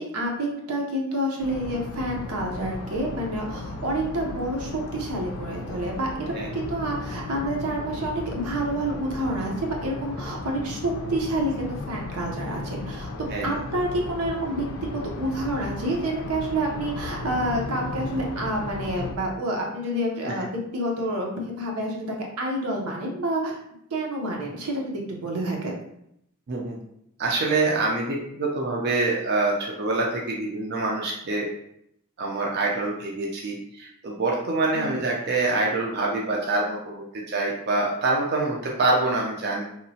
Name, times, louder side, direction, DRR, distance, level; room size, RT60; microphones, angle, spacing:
voice 1, 0.0-14.7 14.9-23.6 23.9-25.8 34.7-35.0, right 1 dB, 90° right, -1 dB, 0.7 m, -28 dB
sound 1, 1.4-19.1, left 2 dB, 70° left, 0.4 m, -35 dB
voice 2, 27.2-31.5 32.2-39.6, right 2 dB, 50° right, -2 dB, 0.4 m, -25 dB
2.9 x 2.1 x 2.7 m, 0.74 s
head